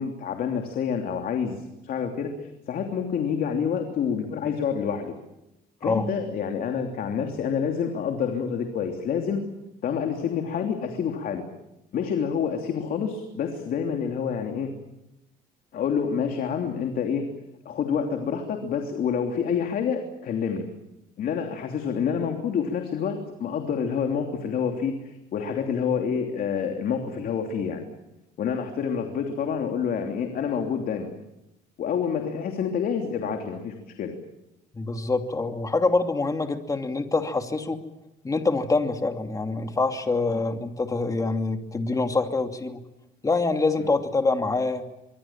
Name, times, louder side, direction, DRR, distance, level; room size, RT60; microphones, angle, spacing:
voice 1, 0.0-5.1 5.8-9.4 9.8-11.4 11.9-14.7 15.7-17.3 17.6-20.6 21.2-27.9 28.4-31.1 31.8-34.1 40.3-40.4, left 7 dB, 60° left, 4 dB, 3.1 m, -28 dB
voice 2, 34.7-37.8 38.2-42.8 43.2-44.8, left 3 dB, 20° left, 5 dB, 2.7 m, -25 dB
24.5 x 24.5 x 7.4 m, 0.92 s
cardioid pair, 110°, 17 cm